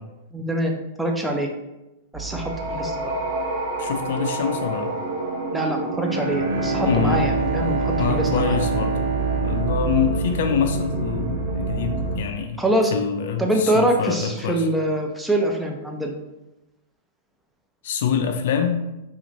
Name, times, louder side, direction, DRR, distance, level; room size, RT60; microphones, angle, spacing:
voice 1, 0.3-1.5 2.1-3.1 5.5-8.5 12.6-12.9 13.4-16.1, right 1 dB, 5° right, 1 dB, 0.5 m, -24 dB
sound 1, 2.1-12.2, right 3 dB, 45° right, 1.0 m, -27 dB
voice 2, 3.8-4.9 6.8-7.2 8.0-9.0 9.4-12.6 12.9-14.7 17.8-18.8, left 7 dB, 65° left, 5 dB, 0.4 m, -25 dB
Bowed string instrument, 5.9-10.8, right 2 dB, 70° right, 0.6 m, -27 dB
3.0 x 2.5 x 3.8 m, 0.97 s
hypercardioid pair, 125°, 0 cm